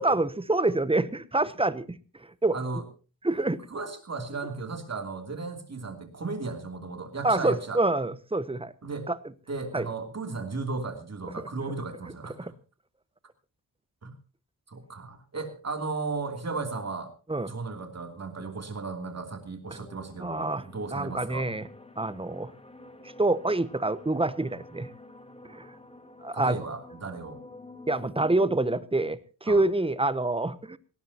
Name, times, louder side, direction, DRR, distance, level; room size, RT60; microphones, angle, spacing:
voice 1, 0.0-2.0 2.4-2.6 3.2-3.7 7.2-8.7 9.1-9.2 9.7-9.9 11.4-11.5 12.4-12.5 17.3-17.5 20.2-20.6 20.9-21.7 22.0-22.5 23.2-24.9 25.5-25.7 26.2-26.6 27.9-30.8, right 2 dB, 15° right, 15 dB, 0.7 m, -26 dB
voice 2, 2.5-2.8 3.7-7.8 8.8-9.1 9.5-12.5 14.0-14.1 14.7-17.1 17.5-21.5 26.3-27.4 29.5-29.6, right 3 dB, 45° right, 5 dB, 2.9 m, -35 dB
sound 1, 19.7-28.8, left 2 dB, 15° left, 1.3 m, -49 dB
18.5 x 18.0 x 2.8 m, 0.34 s
wide cardioid pair, 130°, 37 cm